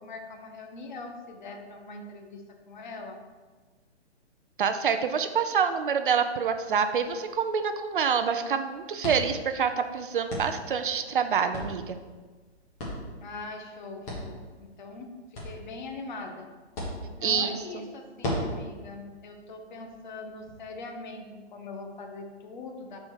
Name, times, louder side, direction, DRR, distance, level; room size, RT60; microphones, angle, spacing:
voice 1, 0.0-3.2 13.2-16.5 17.0-23.0, left 3 dB, 45° left, 3 dB, 1.1 m, -42 dB
voice 2, 4.6-12.0 17.2-17.8, right 6 dB, 50° right, 8 dB, 0.5 m, -27 dB
sound 1, 6.5-20.5, left 1 dB, 20° left, 1.8 m, -40 dB
7.3 x 4.4 x 4.6 m, 1.4 s
hypercardioid pair, 155°, 34 cm